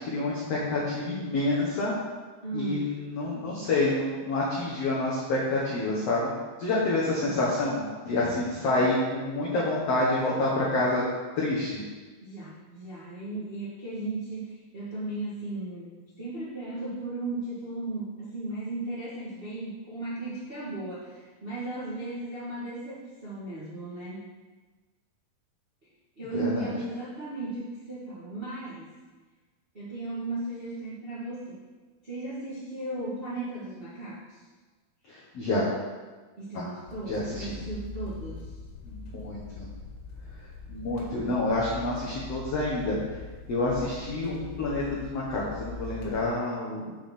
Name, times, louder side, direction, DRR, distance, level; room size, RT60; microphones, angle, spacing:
voice 1, 0.0-1.9 2.5-6.3 6.6-11.0 11.4-11.8 26.3-26.7 35.1-35.7 36.5-36.7 37.1-37.6 38.8-39.7 40.7-43.0 43.5-46.9, left 2 dB, 60° left, -6 dB, 1.7 m, -28 dB
voice 2, 2.4-3.0 8.8-9.0 12.2-24.3 26.2-28.9 29.7-31.6 32.0-34.4 36.4-38.5 41.1-41.4, right 2 dB, 65° right, -9 dB, 0.5 m, -36 dB
sound 1, 36.9-46.3, left 4 dB, 75° left, 3.6 m, -42 dB
7.0 x 5.5 x 5.9 m, 1.3 s
omnidirectional pair, 4.5 m